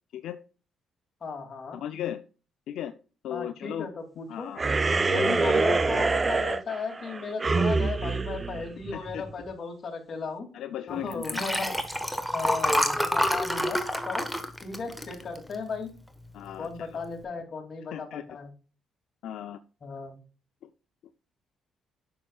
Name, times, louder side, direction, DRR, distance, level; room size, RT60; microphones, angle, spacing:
voice 1, 1.2-1.8 3.3-4.5 5.1-10.5 10.9-11.8 12.3-14.3 14.6-16.0 16.6-18.5 19.8-20.2, left 4 dB, 45° left, 3 dB, 2.6 m, -36 dB
voice 2, 1.7-2.2 2.7-2.9 3.2-3.9 4.3-4.6 5.1-5.6 8.9-9.2 10.5-11.7 16.3-17.0 17.9-18.2 19.2-19.6, left 11 dB, 80° left, 10 dB, 0.5 m, -36 dB
sound 1, 4.6-9.3, right 3 dB, 30° right, 0.6 m, -26 dB
Liquid, 11.1-15.8 16.2-16.5 16.8-16.9, equal, ahead, 1.3 m, -28 dB
9.8 x 6.7 x 2.4 m, 0.34 s
cardioid pair, 90°, 0 cm